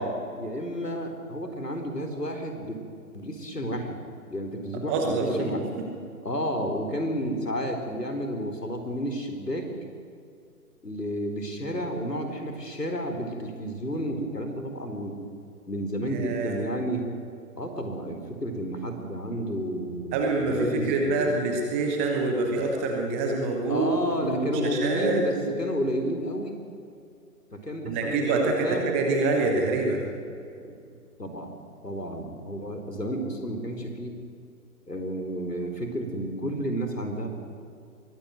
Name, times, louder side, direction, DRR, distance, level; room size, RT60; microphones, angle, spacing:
voice 1, 0.0-2.8 3.1-4.0 4.3-5.6 6.2-9.7 10.8-15.2 15.7-17.1 17.6-21.3 23.7-26.6 27.5-28.9 30.6-30.7 31.2-31.6 31.8-34.2 34.9-37.3, equal, 85° left, 5 dB, 4.3 m, -31 dB
voice 2, 4.9-5.9 16.0-16.6 20.1-25.6 27.8-30.0, right 3 dB, 10° right, 2 dB, 0.9 m, -26 dB
22.0 x 16.0 x 9.2 m, 2.4 s
figure-of-eight pair, 140°, 47 cm